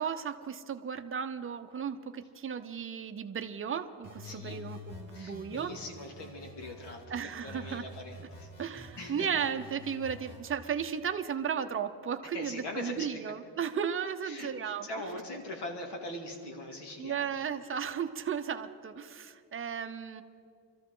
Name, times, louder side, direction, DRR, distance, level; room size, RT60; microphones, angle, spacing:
voice 1, 0.0-5.7 7.1-7.8 8.6-15.1 17.0-20.2, right 7 dB, 30° right, 8 dB, 0.7 m, -35 dB
sound 1, 4.0-7.0 7.5-10.5, left 2 dB, 45° left, 3.3 m, -48 dB
voice 2, 4.2-4.7 5.1-9.3 12.2-13.2 14.2-17.4, left 2 dB, 65° left, 2 dB, 2.4 m, -42 dB
24.5 x 14.0 x 3.8 m, 2.4 s
cardioid pair, 135°, 44 cm